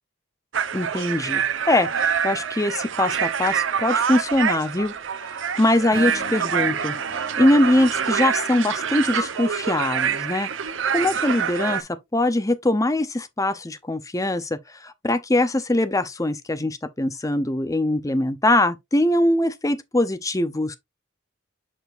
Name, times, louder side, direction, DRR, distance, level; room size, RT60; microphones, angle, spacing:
sound 1, 0.5-11.8, right 7 dB, 70° right, 0.7 m, -26 dB
voice 1, 0.7-5.3 5.6-7.0 7.4-10.5 10.9-20.8, left 1 dB, 15° left, 0.6 m, -22 dB
Acoustic guitar / Strum, 5.9-9.2, left 5 dB, 45° left, 0.9 m, -43 dB
7.0 x 6.1 x 2.5 m
head